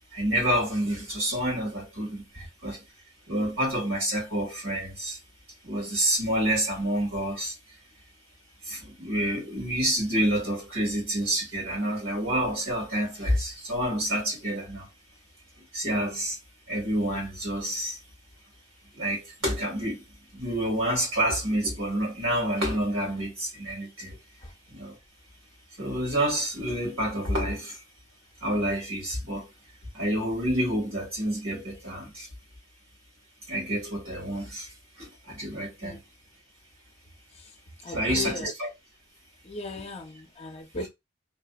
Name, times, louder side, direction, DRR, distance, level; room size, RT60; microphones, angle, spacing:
voice 1, 0.1-2.8 3.3-5.2 5.6-7.6 8.6-14.9 15.7-16.4 16.7-18.0 18.9-20.0 20.3-24.2 24.7-25.0 25.8-27.8 28.4-29.5 29.9-32.3 33.5-34.7 35.0-36.0 37.9-38.7, right 1 dB, 85° right, 1.9 m, -28 dB
voice 2, 37.8-38.5 39.4-40.9, left 2 dB, 30° left, 0.6 m, -37 dB
3.3 x 2.1 x 2.3 m
head